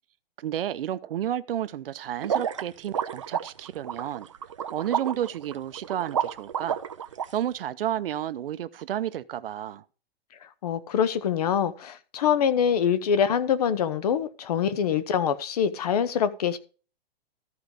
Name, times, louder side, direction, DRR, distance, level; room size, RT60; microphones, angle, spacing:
voice 1, 0.4-4.3 4.7-6.8 7.3-9.8, right 11 dB, 65° right, 0.7 m, -31 dB
sound 1, 2.2-7.3, right 9 dB, 30° right, 0.4 m, -30 dB
voice 2, 10.6-16.6, left 8 dB, 40° left, 0.7 m, -24 dB
13.5 x 4.7 x 5.2 m
hypercardioid pair, 175°, 31 cm